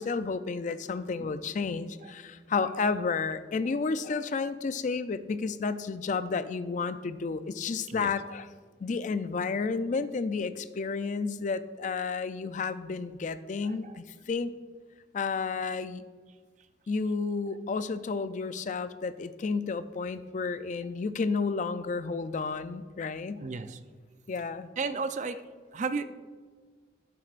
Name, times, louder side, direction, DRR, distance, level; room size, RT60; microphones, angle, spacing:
voice 1, 0.0-8.5 8.8-14.5 15.1-16.0 16.9-23.4 24.3-24.7, left 4 dB, 45° left, 13 dB, 0.4 m, -31 dB
voice 2, 23.4-23.8 24.8-25.4 25.7-26.0, right 4 dB, 45° right, 11 dB, 0.4 m, -33 dB
11.5 x 7.7 x 2.5 m, 1.5 s
head